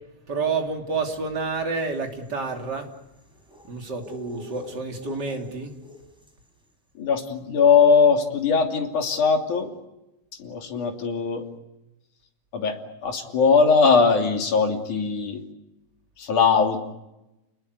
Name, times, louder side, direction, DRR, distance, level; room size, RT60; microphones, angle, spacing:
voice 1, 0.3-2.9 3.6-5.7, right 4 dB, 30° right, 2 dB, 3.5 m, -29 dB
sound 1, 1.9-6.5, equal, ahead, 4.9 m, -47 dB
voice 2, 7.0-9.7 10.4-11.4 12.5-15.4 16.2-16.8, left 5 dB, 70° left, 3 dB, 4.3 m, -20 dB
30.0 x 20.5 x 8.3 m, 0.95 s
omnidirectional pair, 3.6 m